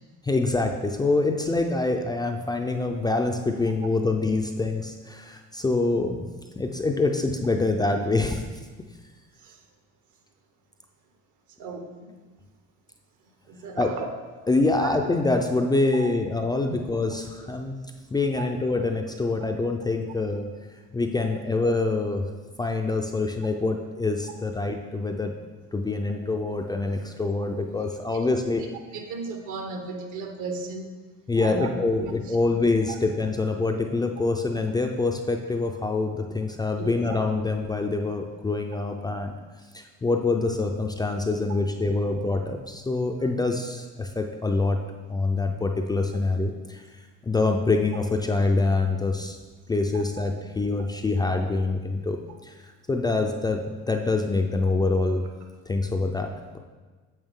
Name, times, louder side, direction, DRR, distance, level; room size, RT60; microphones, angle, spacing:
voice 1, 0.2-6.2 6.6-8.4 13.8-13.9 14.5-17.8 18.1-20.5 20.9-22.3 22.6-25.3 25.7-28.7 31.3-39.3 39.7-44.8 45.1-46.8 47.2-49.4 49.7-52.2 52.4-52.5 52.9-55.3 55.7-56.6, left 3 dB, 15° left, 3 dB, 0.4 m, -25 dB
voice 2, 11.6-12.2 13.5-14.0 14.4-14.5 14.8-14.9 15.9-16.1 16.9-17.0 17.4-17.5 18.4-18.5 28.9-30.9 31.4-31.7 32.0-32.4 32.9-33.0 36.8-36.9 49.9-50.0, right 4 dB, 70° right, 4 dB, 1.2 m, -35 dB
8.9 x 6.2 x 3.6 m, 1.3 s
cardioid pair, 135°, 31 cm